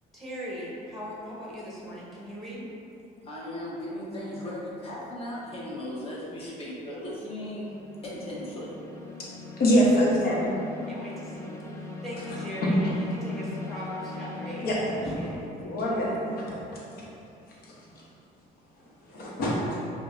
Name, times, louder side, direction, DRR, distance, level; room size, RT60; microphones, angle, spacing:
voice 1, 0.1-2.6 10.9-11.5 12.0-14.8 15.1-15.4, equal, ahead, -6 dB, 0.9 m, -39 dB
sound 1, 0.9-1.2 7.1-15.0, left 3 dB, 15° left, 0.5 m, -41 dB
voice 2, 3.2-7.7 8.0-8.7, left 1 dB, 35° left, -5 dB, 1.0 m, -37 dB
voice 3, 9.6-10.5 12.6-12.7 14.6-14.7 15.0-15.2 15.6-16.1 19.1-19.5, equal, 65° left, -5 dB, 1.0 m, -23 dB
5.5 x 2.2 x 2.6 m, 2.8 s
cardioid pair, 110°, 17 cm